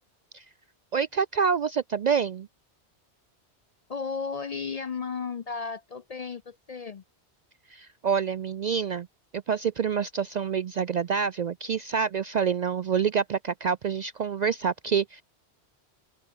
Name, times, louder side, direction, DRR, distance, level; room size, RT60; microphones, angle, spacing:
voice 1, 0.9-2.5 7.7-9.1 9.3-15.2, right 6 dB, 55° right, 0.5 m, -27 dB
voice 2, 3.9-7.0, left 5 dB, 45° left, 0.5 m, -34 dB
open air
omnidirectional pair, 1.1 m